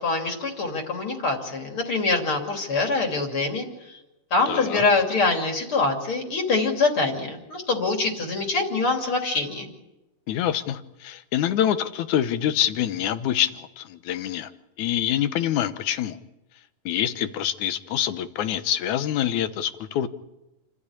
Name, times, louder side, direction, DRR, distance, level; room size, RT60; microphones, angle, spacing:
voice 1, 0.0-4.0 4.3-9.7, left 3 dB, 40° left, 3 dB, 3.5 m, -24 dB
voice 2, 4.5-4.8 10.3-14.5 14.8-16.2 16.9-20.1, left 11 dB, 70° left, 12 dB, 2.3 m, -26 dB
28.5 x 14.0 x 9.8 m, 0.96 s
omnidirectional pair, 3.8 m